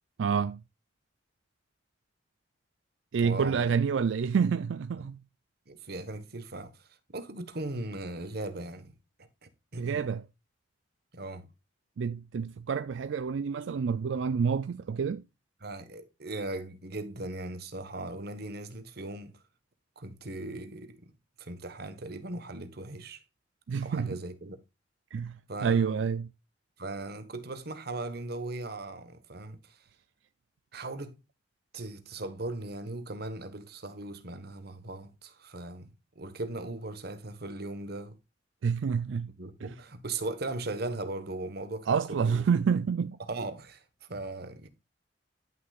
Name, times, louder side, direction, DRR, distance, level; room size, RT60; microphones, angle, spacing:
voice 1, 0.2-0.6 3.1-5.2 9.8-10.2 12.0-15.2 23.7-24.2 25.1-26.3 38.6-39.3 39.6-39.7 41.9-43.2, right 6 dB, 80° right, 0.4 m, -28 dB
voice 2, 3.2-3.7 5.0-5.1 5.7-6.9 7.1-8.9 9.4-10.1 11.1-11.5 15.6-19.4 20.0-21.1 21.4-23.2 23.8-24.6 25.5-26.1 26.8-29.8 30.7-31.2 31.7-38.2 39.4-42.5 43.3-43.8 44.1-44.7, right 2 dB, 55° right, 1.3 m, -38 dB
11.0 x 6.4 x 2.4 m
head